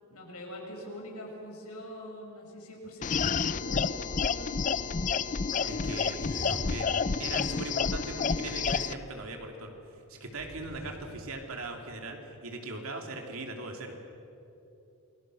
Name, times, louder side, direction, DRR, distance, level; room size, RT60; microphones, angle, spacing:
voice 1, 0.1-4.7 5.5-6.0, equal, 80° left, -1 dB, 6.4 m, -44 dB
sound 1, 3.0-8.9, left 5 dB, 35° left, 0.5 m, -29 dB
voice 2, 5.7-6.2 6.5-9.7 10.1-13.9, right 2 dB, 65° right, 3 dB, 2.9 m, -39 dB
sound 2, 6.2-8.8 10.3-12.0, equal, 45° right, 2.8 m, -44 dB
28.5 x 21.5 x 6.4 m, 2.9 s
head